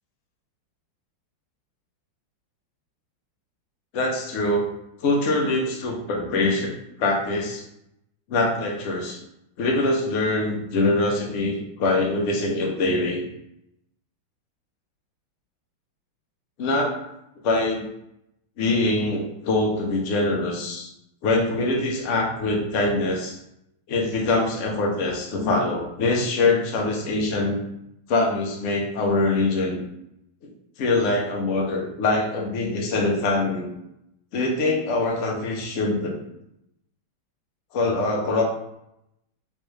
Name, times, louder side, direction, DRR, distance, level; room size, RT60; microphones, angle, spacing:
voice 1, 3.9-4.7 5.0-6.7 7.0-7.6 8.3-9.2 9.6-13.2 16.6-16.9 17.4-17.9 18.6-20.9 21.2-23.4 23.9-27.6 28.1-29.8 30.8-33.7 34.3-36.2 37.7-38.4, left 2 dB, 70° left, 0 dB, 0.7 m, -23 dB
3.4 x 3.1 x 3.2 m, 0.81 s
omnidirectional pair, 2.3 m